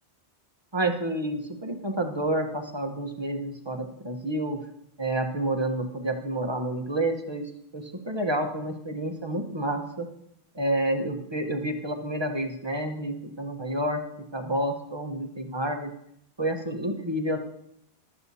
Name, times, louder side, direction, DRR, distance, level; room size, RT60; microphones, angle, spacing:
voice 1, 0.7-4.6 5.0-10.1 10.5-14.0 14.3-15.9 16.4-17.4, right 1 dB, 25° right, 4 dB, 1.1 m, -29 dB
14.5 x 12.0 x 2.8 m, 0.74 s
omnidirectional pair, 1.1 m